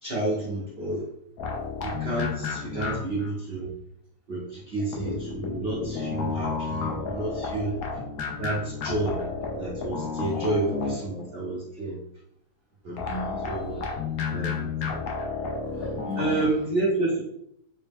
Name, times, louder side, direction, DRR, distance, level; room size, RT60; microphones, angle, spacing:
voice 1, 0.0-1.1 1.8-3.7 4.3-7.8 8.4-9.2 9.5-12.0 12.8-13.0 13.5-13.7 14.3-14.7 16.2-17.2, right 2 dB, 60° right, -5 dB, 0.6 m, -30 dB
sound 1, 1.4-3.3 4.9-11.3 13.0-16.5, left 4 dB, 65° left, 1.0 m, -32 dB
voice 2, 13.1-14.4 15.7-16.5, left 2 dB, 45° left, -7 dB, 0.9 m, -38 dB
4.0 x 2.1 x 3.4 m, 0.73 s
omnidirectional pair, 2.1 m